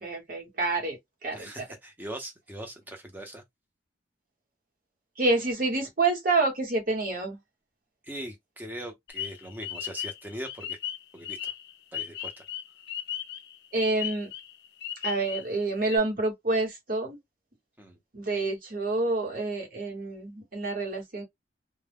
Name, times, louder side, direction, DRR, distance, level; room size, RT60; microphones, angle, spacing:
voice 1, 0.0-1.0 1.2-1.7 5.2-7.4 13.7-14.3 15.0-17.2 18.1-21.2, right 3 dB, 45° right, 1.1 m, -28 dB
voice 2, 1.3-3.4 8.0-10.8 11.1-11.5 11.9-12.4 17.8-18.0, right 1 dB, 10° right, 0.7 m, -40 dB
sound 1, 9.1-15.6 15.9-16.0, left 10 dB, 55° left, 0.4 m, -36 dB
2.2 x 2.1 x 3.4 m
head